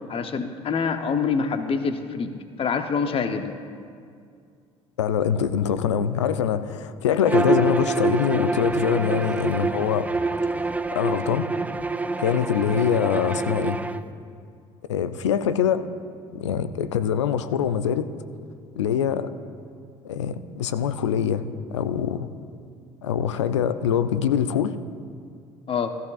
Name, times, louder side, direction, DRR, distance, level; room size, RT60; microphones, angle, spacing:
voice 1, 0.0-3.5 25.7-26.0, left 5 dB, 40° left, 8 dB, 0.8 m, -26 dB
voice 2, 5.0-10.1 10.6-11.5 12.2-13.8 14.9-15.9 16.3-18.1 18.8-19.3 20.0-21.4 21.7-22.3 23.0-24.7, left 8 dB, 85° left, 12 dB, 0.5 m, -24 dB
Bowed string instrument, 7.2-14.0, right 3 dB, 10° right, 0.5 m, -26 dB
15.5 x 14.0 x 2.4 m, 2.3 s
hypercardioid pair, 60°, 15 cm